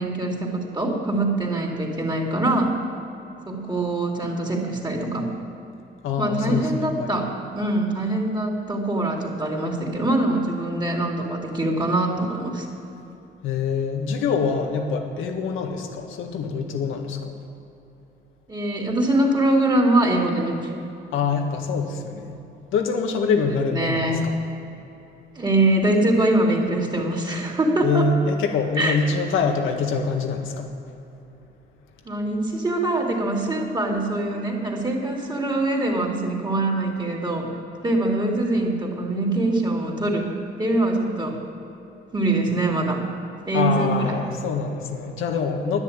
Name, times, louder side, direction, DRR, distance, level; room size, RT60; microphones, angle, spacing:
voice 1, 0.0-2.7 3.4-5.3 6.2-7.3 7.5-12.7 18.5-20.7 23.7-24.2 25.3-28.1 28.8-29.0 32.0-37.6 37.8-40.3 40.6-41.4 42.1-43.0 43.5-44.2, right 2 dB, 20° right, 0 dB, 3.0 m, -23 dB
voice 2, 6.0-7.1 13.4-17.3 21.1-22.4 22.7-24.3 27.8-30.7 43.5-45.8, left 5 dB, 85° left, 3 dB, 1.8 m, -25 dB
11.0 x 10.5 x 8.8 m, 2.9 s
cardioid pair, 90°, 20 cm